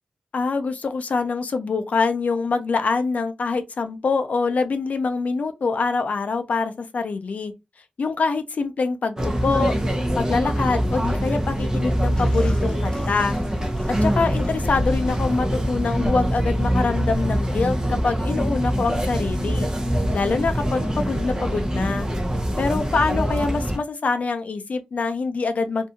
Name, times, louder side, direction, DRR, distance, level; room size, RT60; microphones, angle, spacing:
voice 1, 0.3-7.5 8.0-9.7 10.1-13.4 14.0-19.7 20.1-22.1 22.6-25.9, left 4 dB, 65° left, 0.5 m, -25 dB
sound 1, 9.2-23.8, equal, 25° right, 0.6 m, -24 dB
Bathtub (filling or washing), 12.2-17.6, equal, 30° left, 0.8 m, -38 dB
2.6 x 2.3 x 2.7 m
wide cardioid pair, 125°, 3 cm